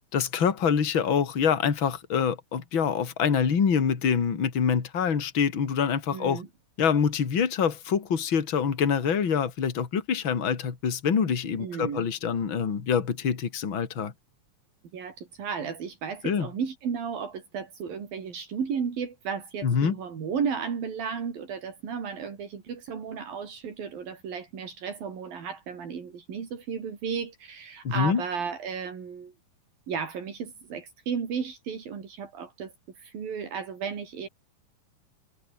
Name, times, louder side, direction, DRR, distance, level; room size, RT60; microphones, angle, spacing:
voice 1, 0.1-6.4 6.8-14.1 16.2-16.5 19.6-20.0 27.8-28.2, left 7 dB, 35° left, 3.0 m, -25 dB
voice 2, 6.1-6.5 11.6-12.1 14.9-29.3 29.9-34.3, right 6 dB, 80° right, 5.6 m, -34 dB
omnidirectional pair, 4.1 m